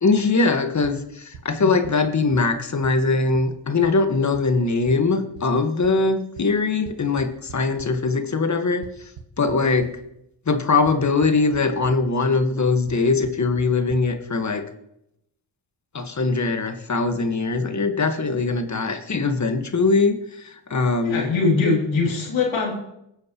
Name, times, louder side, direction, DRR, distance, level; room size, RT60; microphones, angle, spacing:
voice 1, 0.0-8.9 9.4-9.9 10.5-14.6 15.9-21.3, left 3 dB, 40° left, 7 dB, 1.5 m, -21 dB
sound 1, 0.8-0.9 1.3-1.4 1.8-1.9 2.3-2.4 2.8-2.9 3.3-3.4 3.8-3.9 4.3-4.4 4.9-5.0 5.4-5.5 5.8-5.9 6.4-6.5 6.9-7.9 8.8-9.9 10.9-11.0 11.2-11.6 11.8-11.9 12.9-13.0 13.2-13.3 13.6-13.7 13.9-14.0, right 7 dB, 75° right, 1.3 m, -39 dB
voice 2, 21.0-22.7, left 4 dB, 80° left, -2 dB, 3.2 m, -21 dB
19.5 x 7.4 x 3.0 m, 0.81 s
cardioid pair, 55°, 45 cm